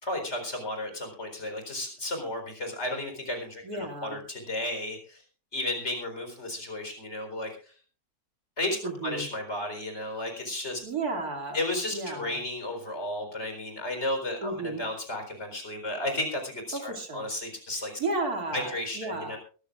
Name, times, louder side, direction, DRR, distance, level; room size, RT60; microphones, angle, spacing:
voice 1, 0.0-5.2 5.5-7.7 8.6-10.8 11.5-18.0 18.5-19.4, left 1 dB, 45° left, 4 dB, 4.5 m, -33 dB
voice 2, 3.6-4.2 8.8-9.3 10.8-11.6 11.9-12.4 14.4-14.9 16.7-17.3 18.0-19.4, right 3 dB, 80° right, 4 dB, 3.0 m, -33 dB
22.5 x 14.0 x 2.5 m, 0.37 s
omnidirectional pair, 1.6 m